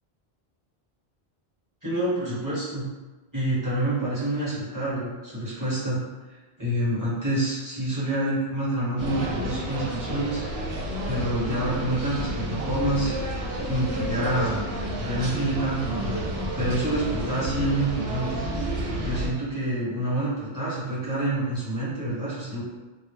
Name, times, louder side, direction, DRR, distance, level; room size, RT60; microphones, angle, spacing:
voice 1, 1.8-2.8 3.3-6.0 6.6-10.7 11.1-14.7 15.0-18.4 19.0-22.6, right 1 dB, 20° right, -10 dB, 1.0 m, -27 dB
sound 1, 9.0-19.3, right 1 dB, 75° right, 0.8 m, -30 dB
2.2 x 2.0 x 3.1 m, 1.2 s
omnidirectional pair, 1.1 m